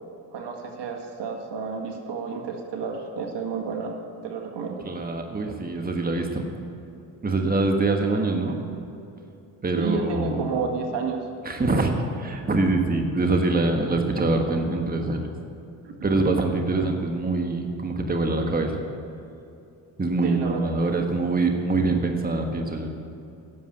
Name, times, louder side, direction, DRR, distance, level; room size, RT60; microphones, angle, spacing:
voice 1, 0.3-4.0 4.2-4.8 9.8-11.2 15.8-16.1 20.2-21.1, right 5 dB, 60° right, 2 dB, 1.9 m, -31 dB
voice 2, 4.8-6.5 7.2-8.6 9.6-10.5 11.4-11.9 12.2-15.3 16.0-18.8 20.0-22.9, right 2 dB, 20° right, 3 dB, 1.4 m, -24 dB
11.0 x 7.4 x 9.1 m, 2.7 s
hypercardioid pair, 55°, 47 cm